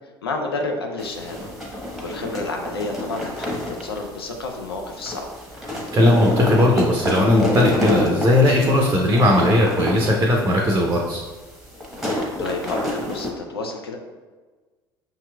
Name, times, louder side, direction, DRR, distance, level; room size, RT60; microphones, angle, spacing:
voice 1, 0.2-1.4 2.0-5.3 12.4-14.0, left 3 dB, 85° left, 2 dB, 0.5 m, -30 dB
sound 1, 1.0-13.3, left 1 dB, 5° right, 1.1 m, -28 dB
voice 2, 5.9-11.2, left 1 dB, 20° right, 0 dB, 0.6 m, -18 dB
5.7 x 2.9 x 2.3 m, 1.3 s
figure-of-eight pair, 65°, 13 cm